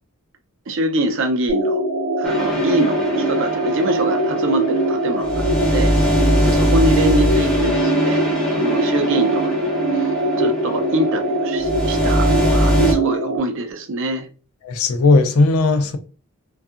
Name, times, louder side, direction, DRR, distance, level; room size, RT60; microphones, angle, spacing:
voice 1, 0.7-1.8 2.2-5.9 6.4-8.2 8.5-14.3, right 1 dB, 55° right, 0.5 m, -24 dB
sound 1, 1.5-13.4, right 2 dB, 40° left, 0.8 m, -22 dB
sound 2, 2.2-12.9, equal, 5° left, 0.6 m, -22 dB
voice 2, 14.6-16.0, left 3 dB, 70° left, 0.4 m, -16 dB
2.6 x 2.3 x 2.4 m
head